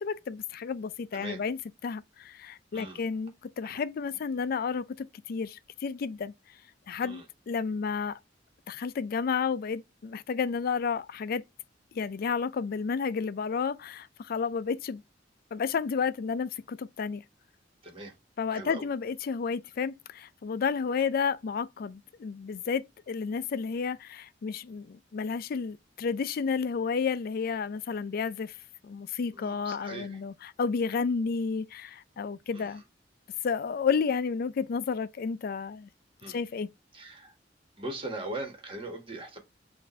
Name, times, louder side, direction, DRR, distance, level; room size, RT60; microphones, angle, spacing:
voice 1, 0.0-1.6 1.8-6.3 6.9-8.2 8.7-11.4 11.9-15.0 15.5-17.2 18.4-28.5 28.8-32.8 33.4-35.9 36.3-36.7, left 5 dB, 55° left, 0.4 m, -31 dB
voice 2, 17.8-18.1 18.5-18.9 29.3-30.2 32.5-32.8 36.2-36.4 36.9-37.3 37.8-39.4, right 2 dB, 30° right, 1.5 m, -40 dB
6.3 x 2.6 x 3.1 m
head